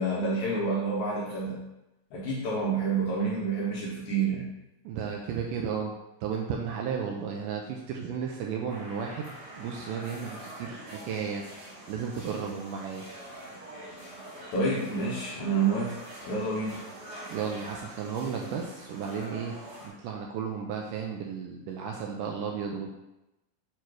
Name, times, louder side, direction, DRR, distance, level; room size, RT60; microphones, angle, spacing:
voice 1, 0.0-1.6 2.1-4.5 14.5-16.0 16.2-16.8, right 3 dB, 70° left, -5 dB, 1.8 m, -28 dB
voice 2, 4.9-5.9 6.2-11.4 11.9-13.0 17.3-19.6 19.8-22.9, right 6 dB, 80° right, 1 dB, 1.9 m, -34 dB
sound 1, 8.7-19.9, right 1 dB, 45° right, 1.3 m, -45 dB
6.7 x 3.1 x 4.6 m, 0.94 s
omnidirectional pair, 4.2 m